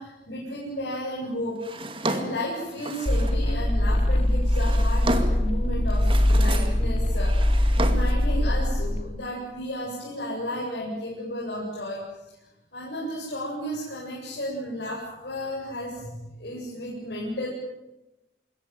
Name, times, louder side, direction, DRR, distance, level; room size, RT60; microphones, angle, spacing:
voice 1, 0.0-12.0 12.7-17.5, equal, 65° left, -4 dB, 8.0 m, -33 dB
Drawer open or close, 1.6-3.4 4.2-5.5 5.9-6.8 7.1-8.3, right 2 dB, 30° right, 2.2 m, -32 dB
sound 1, 3.1-9.0, left 1 dB, 40° left, 2.6 m, -22 dB
26.0 x 22.0 x 9.3 m, 0.98 s
head